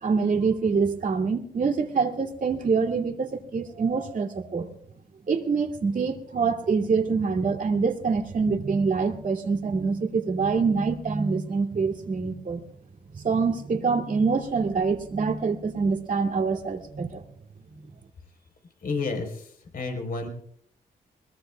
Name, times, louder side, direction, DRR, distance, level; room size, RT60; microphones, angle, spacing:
voice 1, 0.0-4.7 5.3-12.6 13.1-17.2, right 5 dB, 55° right, 3 dB, 2.5 m, -25 dB
voice 2, 18.8-20.3, left 3 dB, 60° left, 4 dB, 3.9 m, -31 dB
21.5 x 21.0 x 2.3 m, 0.64 s
cardioid pair, 75°, 17 cm